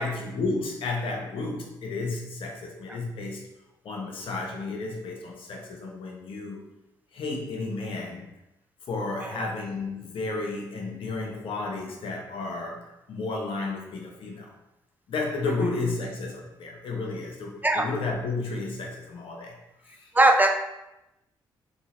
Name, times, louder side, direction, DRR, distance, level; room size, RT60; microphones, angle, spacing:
voice 1, 0.0-3.4 3.8-6.7 7.1-8.3 8.9-12.8 13.1-14.5 15.1-19.6 19.9-20.1, left 3 dB, 70° left, 0 dB, 0.8 m, -32 dB
voice 2, 20.1-20.5, right 2 dB, 20° right, 4 dB, 0.5 m, -18 dB
2.8 x 2.8 x 4.1 m, 0.94 s
supercardioid pair, 50°, 9 cm